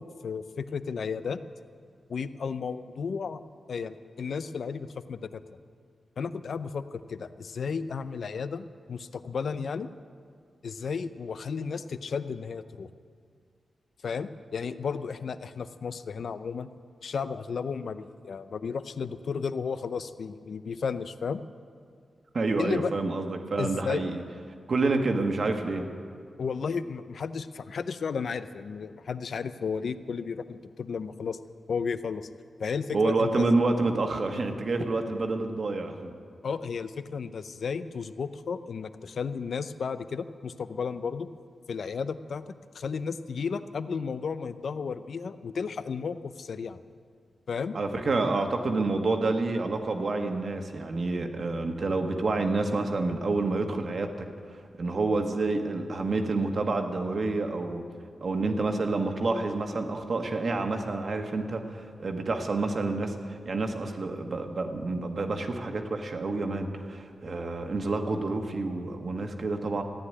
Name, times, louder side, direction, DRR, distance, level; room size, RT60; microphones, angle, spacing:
voice 1, 0.0-1.4 2.1-3.4 3.7-5.6 6.2-9.9 10.6-12.9 14.0-16.7 17.0-21.4 22.6-22.9 23.6-24.0 26.4-31.4 31.7-32.3 32.6-33.5 36.4-41.3 41.7-46.8 47.5-47.8, left 5 dB, 70° left, 12 dB, 0.6 m, -33 dB
voice 2, 22.3-24.2 24.7-25.8 32.9-36.1 47.7-54.1 54.5-57.8 58.2-69.8, right 3 dB, 55° right, 4 dB, 1.5 m, -28 dB
14.5 x 9.8 x 9.7 m, 2.1 s
wide cardioid pair, 105°, 0 cm